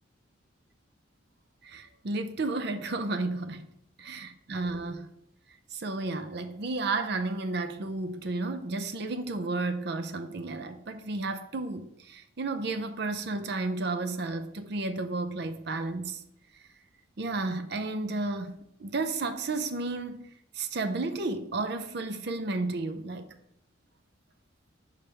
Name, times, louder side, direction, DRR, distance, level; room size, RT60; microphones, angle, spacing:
voice 1, 1.6-3.6 4.0-5.1 5.7-16.2 17.2-20.2 20.5-23.3, right 3 dB, 55° right, 0.6 m, -32 dB
5.1 x 4.9 x 5.6 m
head